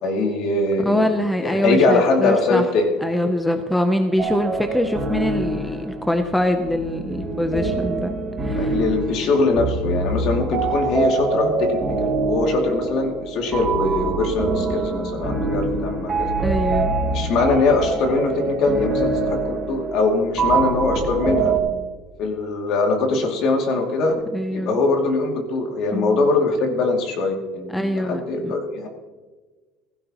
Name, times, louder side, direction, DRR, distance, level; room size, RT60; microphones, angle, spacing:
voice 1, 0.0-1.1 1.4-2.9 8.5-16.3 17.1-21.5 22.2-24.2 24.5-28.9, left 3 dB, 55° left, 2 dB, 2.5 m, -22 dB
voice 2, 0.8-2.6 3.0-8.1 8.4-8.8 16.4-17.0 24.3-24.7 25.9-26.3 27.7-28.5, left 1 dB, 5° left, 6 dB, 0.7 m, -23 dB
sound 1, 4.2-21.6, right 3 dB, 15° right, 3.5 m, -25 dB
16.0 x 15.5 x 3.0 m, 1.3 s
cardioid pair, 145°, 0 cm